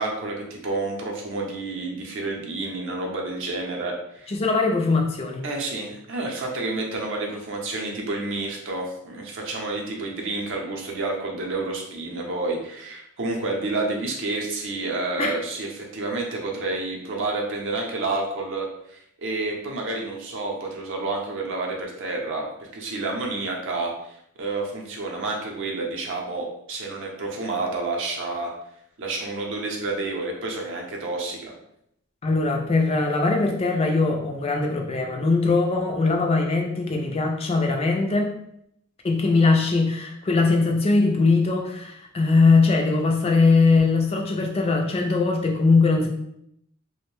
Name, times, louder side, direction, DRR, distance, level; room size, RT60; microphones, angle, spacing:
voice 1, 0.0-4.3 5.4-28.5 29.0-31.5, right 2 dB, 60° right, 1 dB, 0.6 m, -29 dB
voice 2, 4.3-5.4 15.2-15.3 32.2-38.3 39.0-46.1, left 3 dB, 30° left, 2 dB, 0.3 m, -21 dB
2.5 x 2.1 x 3.1 m, 0.75 s
head